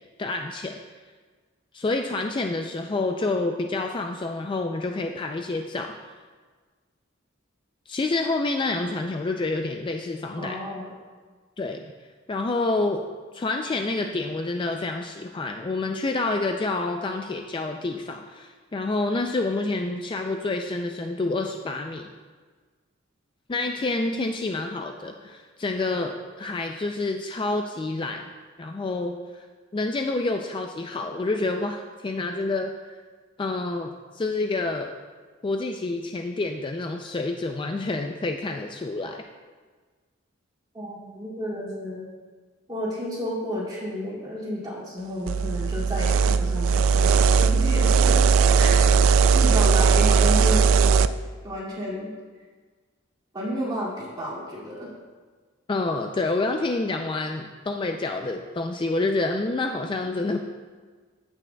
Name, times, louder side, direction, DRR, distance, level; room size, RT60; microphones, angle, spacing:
voice 1, 0.2-0.8 1.7-6.0 7.9-10.6 11.6-11.8 12.3-13.0 13.3-22.1 23.5-28.3 28.6-29.5 29.7-32.7 33.4-33.9 34.1-34.9 35.4-39.2 55.7-60.4, left 2 dB, 25° left, 4 dB, 0.4 m, -28 dB
voice 2, 10.4-10.9 40.7-42.1 42.7-48.2 48.6-51.1 51.4-52.1 53.3-54.9, equal, 20° right, -7 dB, 2.3 m, -32 dB
sound 1, 45.3-51.1, right 5 dB, 90° right, 0.3 m, -18 dB
15.0 x 6.1 x 2.3 m, 1.5 s
head